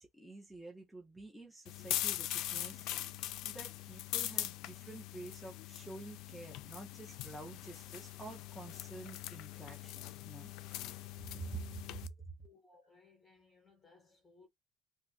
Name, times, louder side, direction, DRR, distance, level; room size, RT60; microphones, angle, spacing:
voice 1, 0.0-2.9 3.4-10.5 11.3-12.1, right 3 dB, 5° right, 0.5 m, -49 dB
sound 1, 1.7-12.1, left 14 dB, 60° left, 0.3 m, -41 dB
voice 2, 12.4-14.5, left 3 dB, 15° left, 1.1 m, -64 dB
2.6 x 2.4 x 3.8 m
cardioid pair, 180°, 0 cm